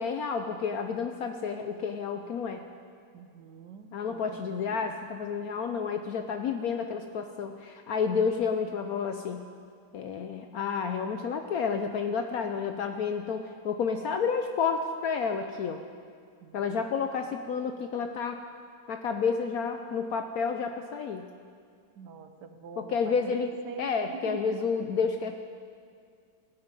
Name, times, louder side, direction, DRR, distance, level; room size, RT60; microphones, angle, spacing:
voice 1, 0.0-2.6 3.9-9.4 9.9-15.8 16.5-18.4 18.9-21.3 22.8-23.5 23.8-25.4, left 5 dB, 70° left, 6 dB, 0.9 m, -30 dB
voice 2, 3.1-4.9 16.4-16.8 22.0-24.4, right 5 dB, 70° right, 8 dB, 1.3 m, -45 dB
16.0 x 8.8 x 5.3 m, 2.2 s
omnidirectional pair, 2.0 m